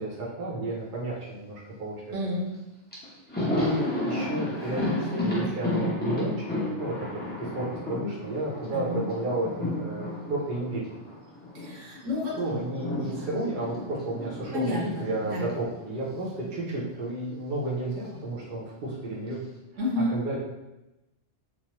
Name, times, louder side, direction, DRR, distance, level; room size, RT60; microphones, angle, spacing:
voice 1, 0.0-2.2 3.4-6.9 7.4-9.5 9.8-10.8 12.4-19.4 20.1-20.4, right 2 dB, 50° right, -5 dB, 0.7 m, -32 dB
voice 2, 2.1-2.5 8.7-9.1 11.5-12.4 13.0-13.3 14.5-15.5 19.8-20.2, left 2 dB, 75° right, -4 dB, 1.1 m, -30 dB
Thunder, 2.5-2.6 2.9-11.7 12.0-16.3 16.6-16.7 17.9-18.6, left 1 dB, 10° left, 0.5 m, -32 dB
3.0 x 2.0 x 2.9 m, 0.97 s
omnidirectional pair, 1.3 m